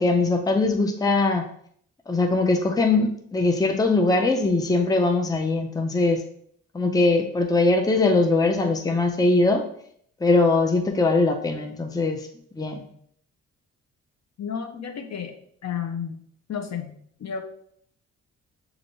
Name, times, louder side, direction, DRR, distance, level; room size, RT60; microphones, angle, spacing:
voice 1, 0.0-1.4 2.1-6.2 6.7-9.6 10.2-12.3 12.6-12.9, left 3 dB, 10° left, 4 dB, 0.6 m, -21 dB
voice 2, 14.4-15.3 15.6-16.2 16.5-16.9 17.2-17.4, left 7 dB, 50° left, 5 dB, 0.8 m, -31 dB
6.2 x 2.6 x 3.0 m, 0.65 s
supercardioid pair, 55°, 35 cm